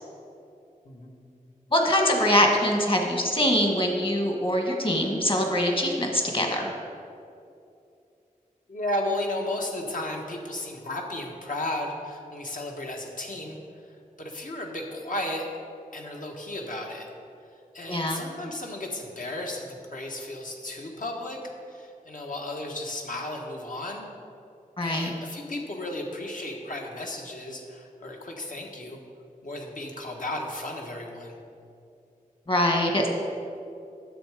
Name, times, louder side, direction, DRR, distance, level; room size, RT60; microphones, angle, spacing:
voice 1, 0.8-1.2 8.7-13.6 14.2-15.5 15.9-17.1 17.7-21.4 21.7-24.0 24.8-29.0 29.4-31.3, left 1 dB, 65° left, 0 dB, 1.4 m, -34 dB
voice 2, 1.7-6.7 17.9-18.2 24.8-25.1 32.5-33.1, left 1 dB, 35° left, 1 dB, 1.5 m, -23 dB
10.0 x 7.5 x 4.9 m, 2.6 s
wide cardioid pair, 85°, 15 cm